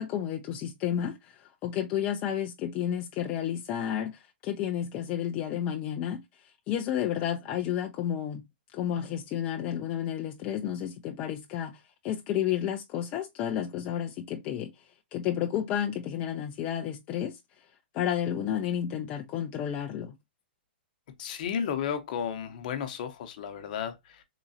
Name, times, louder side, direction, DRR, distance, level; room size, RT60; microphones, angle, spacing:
voice 1, 0.0-6.2 6.7-8.4 8.7-14.7 15.1-17.4 17.9-20.1, left 10 dB, 25° left, 0.4 m, -31 dB
voice 2, 21.2-24.2, left 8 dB, 45° left, 0.9 m, -33 dB
3.8 x 3.0 x 2.7 m
hypercardioid pair, 160°, 6 cm